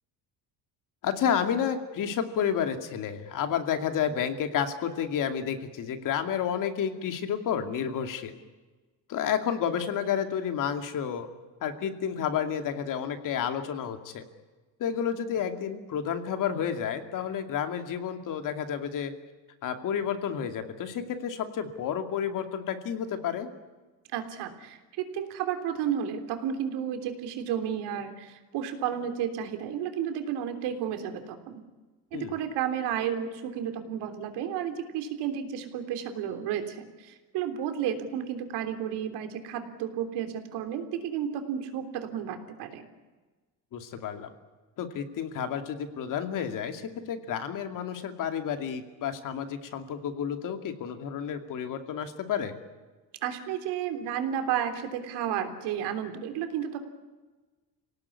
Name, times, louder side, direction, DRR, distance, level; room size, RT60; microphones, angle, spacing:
voice 1, 1.0-8.3 9.1-11.3 11.6-14.2 14.8-19.1 19.6-23.5 32.1-32.3 43.7-44.3 44.8-52.6, left 8 dB, 50° left, 7 dB, 2.5 m, -30 dB
voice 2, 24.1-31.6 32.1-42.9 53.2-56.8, right 9 dB, 85° right, 6 dB, 3.5 m, -32 dB
27.0 x 18.0 x 9.8 m, 1.3 s
cardioid pair, 155°, 39 cm